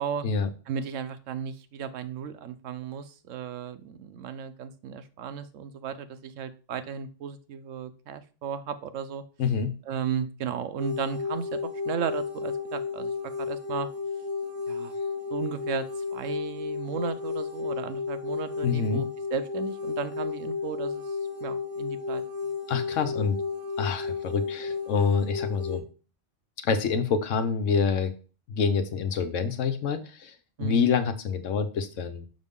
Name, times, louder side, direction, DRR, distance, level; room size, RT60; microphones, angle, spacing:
voice 1, 0.7-9.2 9.9-13.1 13.4-13.9 14.7-14.9 15.3-15.8 16.1-21.2 21.4-22.5 30.6-30.9, right 7 dB, 90° right, 11 dB, 1.1 m, -35 dB
voice 2, 9.4-9.8 18.6-19.1 22.7-23.4 23.8-25.8 26.6-28.1 28.5-30.3 30.6-32.3, left 5 dB, 90° left, 8 dB, 1.2 m, -26 dB
sound 1, 10.8-25.8, left 5 dB, 65° left, 1.6 m, -33 dB
6.3 x 5.4 x 3.6 m, 0.36 s
omnidirectional pair, 1.3 m